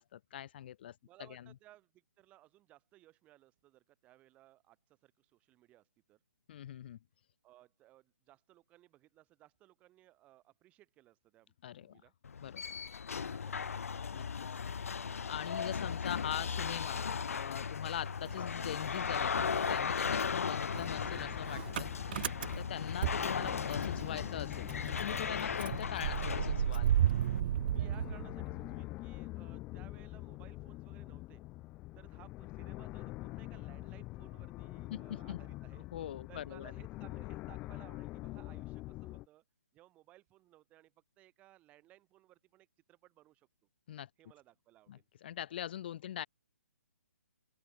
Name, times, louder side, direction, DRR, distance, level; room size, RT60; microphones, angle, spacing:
voice 1, 0.0-1.0 1.3-1.5 6.5-7.0 11.6-12.0 12.4-12.6 14.1-14.5 15.3-22.2 22.6-26.9 34.9-35.4 35.9-36.7 43.9-44.1 44.9-46.3, left 11 dB, 40° left, 1.6 m, -42 dB
voice 2, 1.0-6.2 7.4-12.1 13.3-14.0 27.7-31.5 31.9-35.9 36.3-39.4 39.7-43.5 44.2-45.1, right 15 dB, 15° right, 3.7 m, -61 dB
sound 1, 12.2-27.4, left 6 dB, 70° left, 1.6 m, -37 dB
Motor vehicle (road) / Engine starting, 17.9-19.1 19.4-24.0 24.4-24.5 24.7-28.8, right 11 dB, 40° right, 0.6 m, -34 dB
sound 2, 20.7-39.3, left 19 dB, 15° left, 0.5 m, -45 dB
open air
hypercardioid pair, 155°, 8 cm